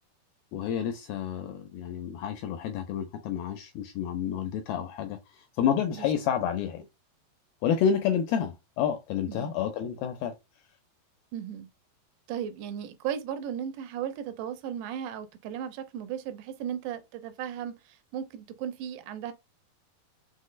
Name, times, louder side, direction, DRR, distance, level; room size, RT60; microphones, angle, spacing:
voice 1, 0.5-6.9 7.6-10.3, left 8 dB, 85° left, 2.1 m, -29 dB
voice 2, 11.3-11.7 12.3-19.3, right 9 dB, 90° right, 2.8 m, -36 dB
6.3 x 2.1 x 3.1 m
omnidirectional pair, 4.7 m